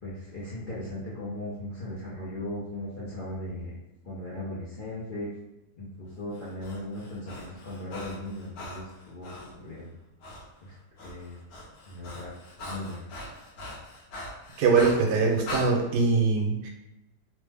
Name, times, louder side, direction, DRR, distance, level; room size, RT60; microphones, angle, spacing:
voice 1, 0.0-3.7 4.0-5.3 5.8-9.9 10.6-10.7 11.0-11.4 11.8-12.3 12.6-13.1, left 1 dB, 50° left, -9 dB, 0.6 m, -37 dB
Breathing, 6.3-9.5 10.2-10.4 10.7-15.7, left 1 dB, 70° left, 1.1 m, -41 dB
voice 2, 14.6-16.7, right 4 dB, 90° right, 1 dB, 1.2 m, -23 dB
3.1 x 2.0 x 3.3 m, 0.96 s
omnidirectional pair, 1.7 m